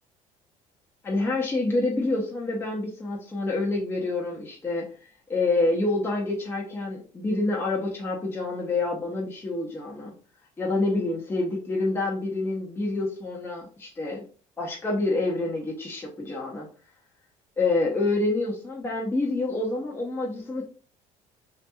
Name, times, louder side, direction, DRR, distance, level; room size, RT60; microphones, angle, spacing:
voice 1, 1.0-10.1 10.6-14.2 14.6-16.7 17.6-20.6, left 2 dB, 15° left, -3 dB, 0.6 m, -27 dB
2.8 x 2.5 x 2.2 m, 0.40 s
cardioid pair, 125°, 14 cm